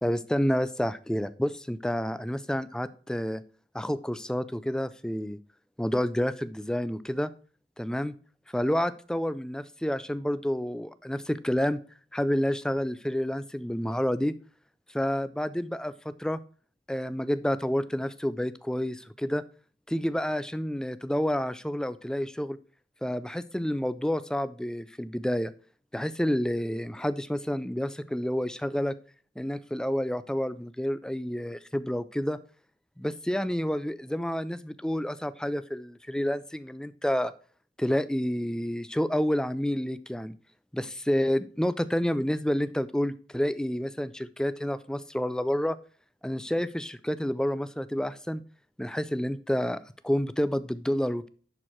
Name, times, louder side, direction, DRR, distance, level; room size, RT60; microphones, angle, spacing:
voice 1, 0.0-3.4 3.7-5.4 5.8-7.3 7.8-8.1 8.5-11.8 12.1-14.3 14.9-16.4 16.9-19.4 19.9-22.6 23.0-25.5 25.9-28.9 29.4-32.4 33.0-37.3 37.8-40.3 40.7-45.8 46.2-48.4 48.8-51.3, equal, 5° left, 14 dB, 0.3 m, -29 dB
10.5 x 4.6 x 4.4 m, 0.43 s
head